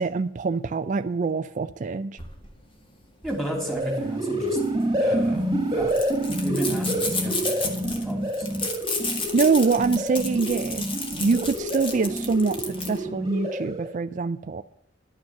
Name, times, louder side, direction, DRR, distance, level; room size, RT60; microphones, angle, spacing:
voice 1, 0.0-2.2 9.3-10.9 11.2-14.6, right 4 dB, 40° right, 9 dB, 0.4 m, -24 dB
sound 1, 2.2-13.0, left 3 dB, 30° left, 1.8 m, -33 dB
voice 2, 3.2-4.6 5.0-5.5 5.7-5.9 6.4-8.6, right 1 dB, ahead, 0 dB, 3.2 m, -33 dB
sound 2, 3.4-14.0, right 1 dB, 20° right, 1.8 m, -28 dB
11.5 x 6.2 x 8.5 m, 0.71 s
head